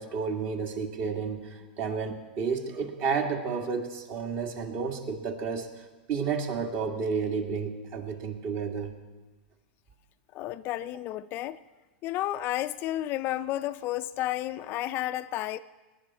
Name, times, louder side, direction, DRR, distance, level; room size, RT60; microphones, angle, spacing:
voice 1, 0.0-8.9, right 5 dB, 40° right, 2.0 m, -31 dB
voice 2, 10.3-11.6 12.0-15.6, left 14 dB, 35° left, 0.4 m, -31 dB
21.0 x 10.5 x 4.3 m
hypercardioid pair, 130°, 6 cm